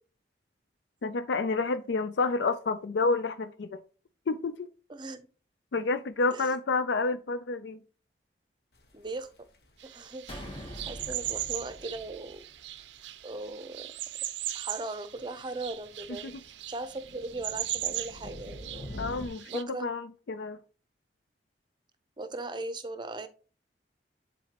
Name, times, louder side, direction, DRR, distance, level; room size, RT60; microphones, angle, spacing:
voice 1, 1.0-3.8 4.3-4.7 5.7-7.8 16.2-16.4 19.0-20.6, left 3 dB, 75° left, 0.4 m, -29 dB
voice 2, 4.9-5.3 6.3-6.5 8.9-9.3 9.8-10.3 10.9-12.4 13.2-13.9 14.5-18.9 19.5-19.9 22.2-23.3, right 2 dB, 25° right, 0.6 m, -38 dB
sound 1, 8.7-19.3, equal, 60° left, 1.3 m, -48 dB
sound 2, 9.8-19.6, right 14 dB, 80° right, 0.5 m, -39 dB
sound 3, 10.3-12.9, equal, 30° left, 1.1 m, -44 dB
10.0 x 4.0 x 2.9 m
head